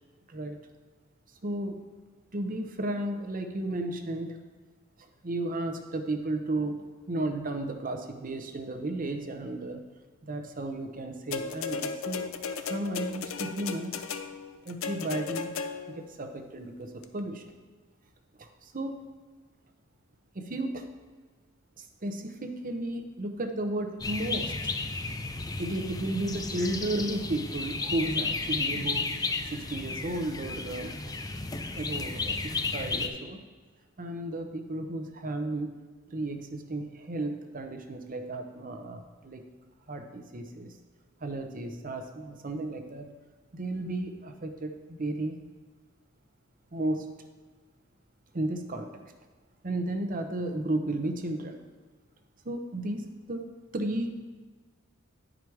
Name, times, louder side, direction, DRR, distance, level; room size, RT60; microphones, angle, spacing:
voice 1, 1.4-1.8 2.3-4.4 5.2-9.8 10.3-12.3 12.6-14.0 14.6-15.5 15.9-17.4 18.4-19.0 20.3-20.9 21.8-24.7 25.6-29.1 29.5-31.1 31.7-32.4 32.7-33.4 34.0-35.7 36.1-39.4 39.9-40.7 41.2-43.1 43.5-45.4 46.7-47.1 48.3-49.0 49.6-51.6 52.4-53.5 53.7-54.1, right 1 dB, 40° right, 6 dB, 0.7 m, -33 dB
sound 1, 11.3-16.1 17.0-17.1, left 5 dB, 70° left, 0.5 m, -35 dB
sound 2, 24.0-33.1, left 3 dB, 15° left, 0.4 m, -33 dB
9.8 x 5.0 x 4.7 m, 1.4 s
head